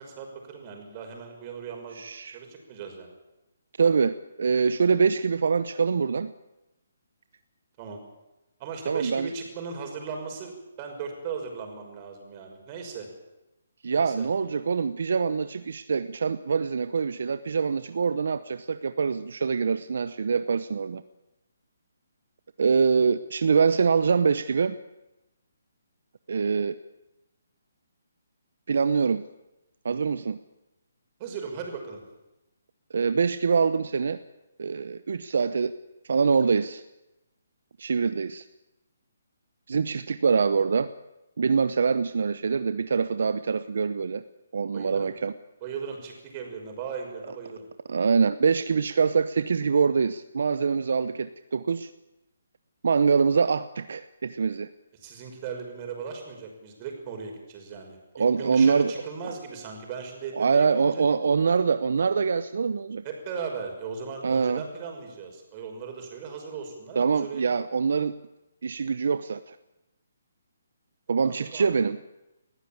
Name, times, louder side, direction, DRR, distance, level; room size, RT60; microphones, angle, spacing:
voice 1, 0.0-2.0 2.3-3.1 7.8-8.0 8.6-13.1 13.9-14.3 31.2-32.0 44.7-45.1 45.6-47.7 55.0-61.0 63.0-67.4 71.2-71.7, right 5 dB, 30° right, 3 dB, 5.7 m, -37 dB
voice 2, 2.0-2.4 3.8-6.3 8.9-9.3 13.8-21.0 22.6-24.7 26.3-26.7 28.7-29.2 29.8-30.4 32.9-34.2 34.6-35.7 36.1-36.8 37.8-38.5 39.7-40.9 41.4-44.2 44.5-45.3 47.9-51.9 52.8-54.7 58.2-58.9 59.2-59.3 60.3-63.0 64.2-64.6 67.0-68.1 68.6-69.6 71.1-72.0, right 5 dB, 65° right, 13 dB, 0.8 m, -24 dB
20.5 x 15.0 x 8.7 m, 0.96 s
hypercardioid pair, 150°, 0 cm